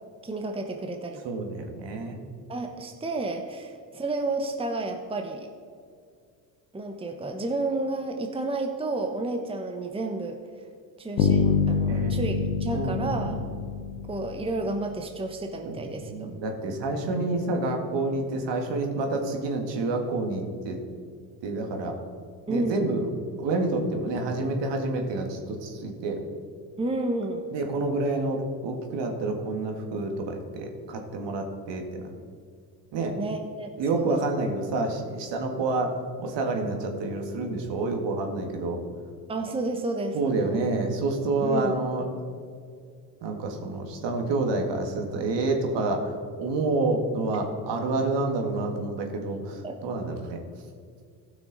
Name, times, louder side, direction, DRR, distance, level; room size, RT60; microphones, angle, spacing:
voice 1, 0.2-1.2 2.5-5.5 6.7-10.4 11.0-13.4 14.1-16.4 22.5-22.9 26.8-27.5 33.1-34.2 39.3-40.6 41.4-41.7 49.6-49.8, right 2 dB, 10° right, 4 dB, 1.0 m, -31 dB
voice 2, 1.2-2.2 11.9-12.2 12.7-13.4 15.6-15.8 16.0-20.8 21.4-22.0 22.5-23.1 23.4-26.2 27.5-32.1 32.9-33.2 33.8-38.8 40.1-42.0 43.2-50.4, right 2 dB, 60° right, 3 dB, 1.9 m, -28 dB
Bass guitar, 11.2-15.0, left 6 dB, 85° left, 1.0 m, -26 dB
15.5 x 6.2 x 4.0 m, 2.2 s
hypercardioid pair, 65°, 49 cm